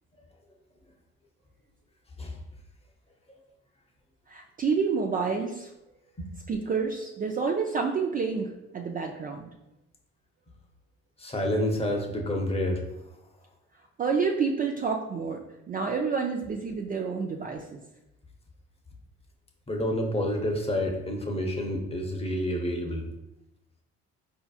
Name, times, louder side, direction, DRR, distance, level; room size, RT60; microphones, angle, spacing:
voice 1, 4.3-5.7 6.5-9.5 14.0-17.8, right 5 dB, 30° right, 2 dB, 0.4 m, -29 dB
voice 2, 11.2-12.8 19.7-23.0, left 1 dB, 20° left, 2 dB, 0.8 m, -29 dB
4.3 x 2.8 x 2.4 m, 0.90 s
supercardioid pair, 65°, 30 cm